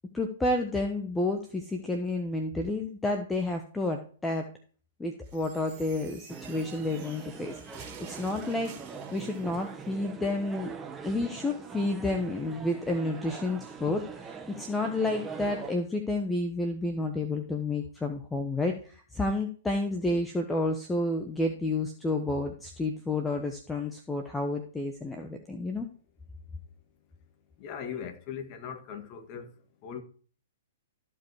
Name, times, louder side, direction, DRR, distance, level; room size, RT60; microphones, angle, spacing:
voice 1, 0.1-4.5 5.0-8.7 9.1-10.7 11.0-25.9, left 2 dB, 10° left, 1.1 m, -30 dB
sound 1, 5.2-9.7, right 6 dB, 40° right, 2.5 m, -50 dB
sound 2, 6.3-15.7, right 5 dB, 15° right, 1.2 m, -43 dB
voice 2, 27.6-29.5 29.8-30.0, left 7 dB, 40° left, 1.8 m, -39 dB
14.0 x 5.3 x 4.8 m
hypercardioid pair, 125°, 0 cm